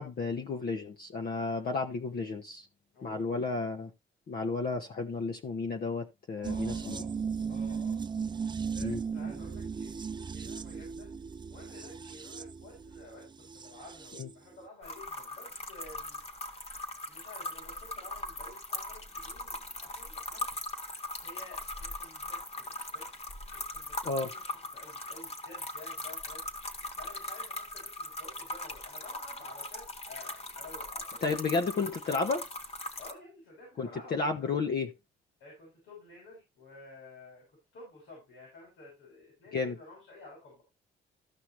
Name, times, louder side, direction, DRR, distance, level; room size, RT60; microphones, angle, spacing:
voice 1, 0.0-2.7 3.0-3.9 4.3-7.0 8.8-9.0 14.2-14.3 24.0-24.3 31.2-32.5 33.8-34.9 39.5-39.7, left 4 dB, 50° left, 1.3 m, -32 dB
voice 2, 2.9-3.7 6.4-7.2 7.5-8.0 8.7-11.1 11.5-16.2 17.1-20.5 21.2-23.1 23.5-26.4 27.0-31.2 33.0-34.5 35.4-37.4 37.7-40.6, left 2 dB, 90° left, 7.2 m, -52 dB
sound 1, 6.4-14.3 14.6-14.7, right 6 dB, 25° right, 0.4 m, -37 dB
sound 2, 14.8-33.1, left 2 dB, 30° left, 1.8 m, -40 dB
15.0 x 5.7 x 3.2 m
cardioid pair, 90°, 20 cm